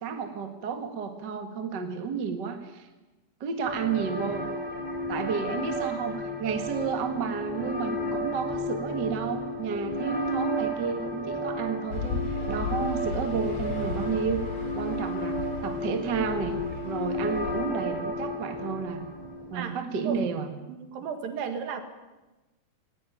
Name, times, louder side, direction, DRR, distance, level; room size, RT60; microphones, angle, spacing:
voice 1, 0.0-2.9 3.4-4.4 5.1-14.4 14.7-15.4 15.6-16.6 16.8-19.0 19.5-20.5, right 6 dB, 40° right, 6 dB, 1.7 m, -31 dB
sound 1, 3.6-19.6, equal, 5° right, 3.7 m, -33 dB
sound 2, 11.9-17.6, left 5 dB, 40° left, 3.7 m, -36 dB
voice 2, 20.8-21.8, right 7 dB, 70° right, 7 dB, 3.4 m, -33 dB
18.5 x 18.0 x 9.1 m, 1.1 s
omnidirectional pair, 4.4 m